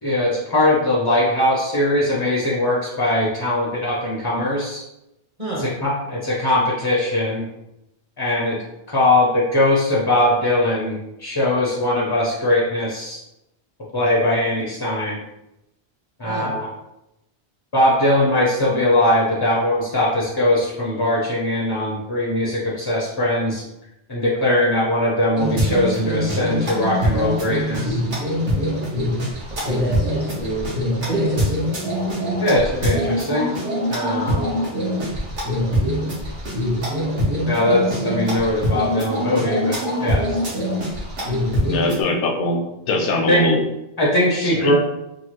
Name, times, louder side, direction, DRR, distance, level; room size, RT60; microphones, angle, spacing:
voice 1, 0.0-4.8 5.6-7.4 8.2-8.6 8.9-13.2 13.9-15.2 16.2-16.7 17.7-23.6 24.1-28.0 32.4-33.5 33.9-34.4 37.5-40.4 43.3-43.5 44.0-44.7, left 1 dB, 40° left, -5 dB, 0.3 m, -20 dB
sound 1, 25.4-42.0, equal, 85° right, 1.2 m, -24 dB
voice 2, 29.6-30.7 31.1-31.6, right 1 dB, 35° right, -4 dB, 0.8 m, -27 dB
voice 3, 41.7-43.6 44.4-44.7, left 2 dB, 80° left, 2 dB, 0.9 m, -22 dB
3.0 x 2.3 x 2.9 m, 0.90 s
omnidirectional pair, 1.1 m